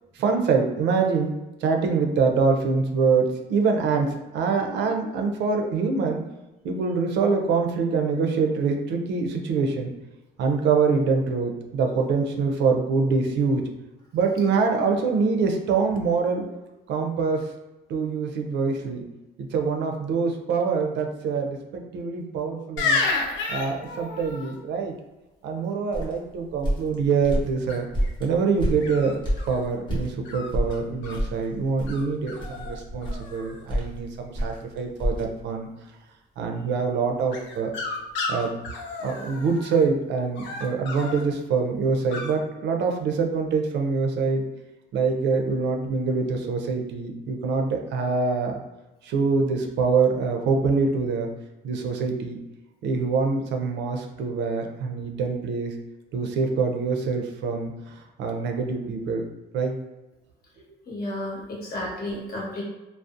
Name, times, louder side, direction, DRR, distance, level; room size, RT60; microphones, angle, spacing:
voice 1, 0.1-1.3 1.6-6.2 6.6-9.9 10.4-13.6 14.1-16.4 16.9-17.4 17.9-19.0 19.4-23.0 23.5-24.9 25.4-27.9 28.2-29.2 29.5-35.7 36.4-37.7 38.3-38.5 39.0-44.4 44.9-48.6 49.0-51.3 51.6-52.4 52.8-55.7 56.1-59.2 59.5-59.7 61.8-61.9, right 4 dB, 70° right, 3 dB, 0.4 m, -25 dB
sound 1, 22.8-24.5 27.7-28.1 28.8-29.7 30.2-31.2 31.9-32.0 32.3-32.8 33.0-33.6 37.3-39.8 40.3-41.2 42.1-42.3, left 3 dB, 75° left, 0.5 m, -31 dB
sound 2, 25.9-30.1 30.5-35.2, equal, 25° left, 0.8 m, -28 dB
voice 2, 60.9-62.6, left 1 dB, 55° left, -3 dB, 0.9 m, -32 dB
2.6 x 2.0 x 2.4 m, 1.0 s
cardioid pair, 120°, 19 cm